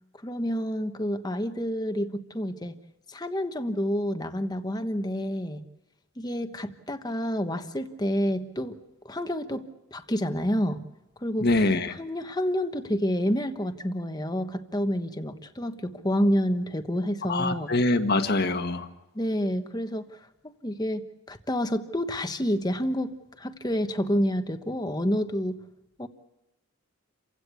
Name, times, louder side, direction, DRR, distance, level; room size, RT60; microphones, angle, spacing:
voice 1, 0.2-2.7 3.1-5.6 6.2-8.7 9.0-9.6 9.9-10.8 11.2-11.5 12.0-17.7 19.1-20.1 20.6-23.1 23.4-25.6 26.0-26.1, equal, 20° left, 8 dB, 1.2 m, -28 dB
voice 2, 11.4-11.9 17.2-18.9, left 2 dB, 45° left, 8 dB, 1.6 m, -24 dB
29.0 x 16.5 x 8.4 m, 0.97 s
head